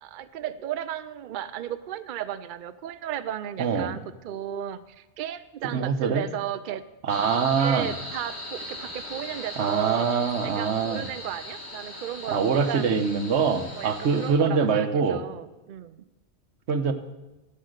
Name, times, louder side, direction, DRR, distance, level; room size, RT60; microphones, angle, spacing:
voice 1, 0.0-6.8 7.6-10.1 10.4-12.9 13.8-16.0, right 11 dB, 60° right, 13 dB, 0.6 m, -34 dB
voice 2, 3.6-4.0 5.7-6.2 7.0-7.9 9.6-11.1 12.3-15.2 16.7-16.9, right 6 dB, 90° right, 9 dB, 1.2 m, -24 dB
sound 1, 7.1-14.3, left 1 dB, 75° left, 2.2 m, -39 dB
14.0 x 5.6 x 6.5 m, 1.1 s
omnidirectional pair, 1.1 m